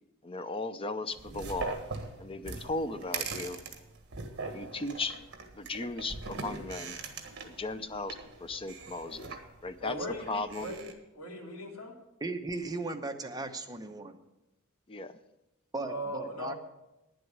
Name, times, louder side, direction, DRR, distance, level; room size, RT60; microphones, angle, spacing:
voice 1, 0.2-1.8 2.2-3.6 4.4-5.2 5.5-7.0 7.4-10.0 10.3-10.7 14.9-15.2, left 3 dB, 25° left, 11 dB, 0.6 m, -36 dB
sound 1, 1.1-10.9, right 4 dB, 55° right, 1.6 m, -41 dB
voice 2, 9.8-12.0 15.8-16.6, equal, 80° left, -2 dB, 2.8 m, -39 dB
voice 3, 12.2-14.2 15.7-16.5, right 3 dB, 20° right, 5 dB, 0.9 m, -37 dB
9.9 x 7.7 x 8.2 m, 0.93 s
head